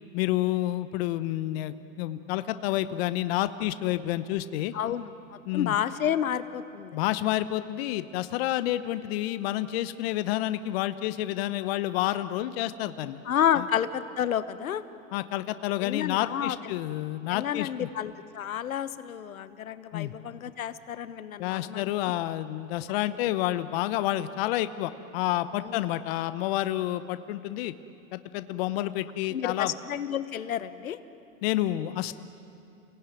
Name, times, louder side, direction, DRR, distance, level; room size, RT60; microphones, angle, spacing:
voice 1, 0.1-4.7 5.5-5.7 6.9-13.2 13.5-13.6 15.1-17.9 19.9-20.1 21.4-27.7 28.1-29.7 31.4-32.1, left 14 dB, 45° left, 12 dB, 1.0 m, -29 dB
voice 2, 4.7-7.0 13.2-14.8 15.8-16.7 17.3-21.9 25.6-25.8 29.3-31.0, left 10 dB, 90° left, 13 dB, 1.2 m, -30 dB
29.0 x 17.5 x 9.3 m, 2.7 s
hypercardioid pair, 135°, 41 cm